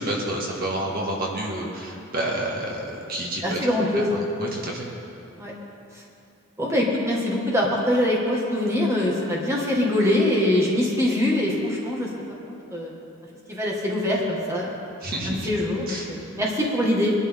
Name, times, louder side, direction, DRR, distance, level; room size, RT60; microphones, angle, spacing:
voice 1, 0.0-3.6 4.4-4.9 15.0-15.4 15.9-16.0, right 1 dB, 45° right, -2 dB, 1.9 m, -29 dB
voice 2, 3.4-4.3 5.4-5.5 6.6-12.1 12.5-12.9 13.5-14.8 15.2-17.1, left 1 dB, 15° right, -4 dB, 1.9 m, -23 dB
22.5 x 12.0 x 3.7 m, 2.6 s
head